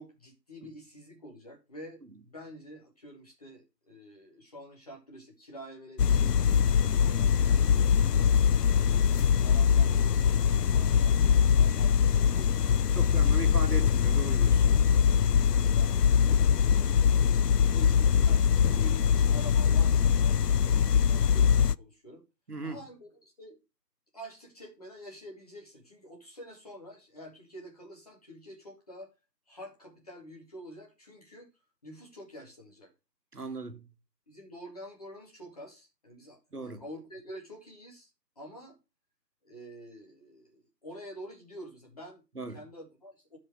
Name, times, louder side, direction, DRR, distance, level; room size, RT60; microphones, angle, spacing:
voice 1, 0.0-7.3 8.8-13.6 15.3-15.9 16.5-22.2 22.6-23.6 24.1-29.1 29.5-31.5 31.8-32.9 33.4-33.5 34.3-38.1 38.4-38.8 39.4-42.2 42.5-43.4, equal, 20° left, 2.2 m, -48 dB
sound 1, 6.0-21.8, left 7 dB, 70° left, 0.5 m, -23 dB
voice 2, 12.9-14.7 22.5-22.8 33.3-33.9 36.5-36.8 42.4-42.6, right 3 dB, 65° right, 2.0 m, -37 dB
12.0 x 4.9 x 4.7 m
figure-of-eight pair, 165°, 50 cm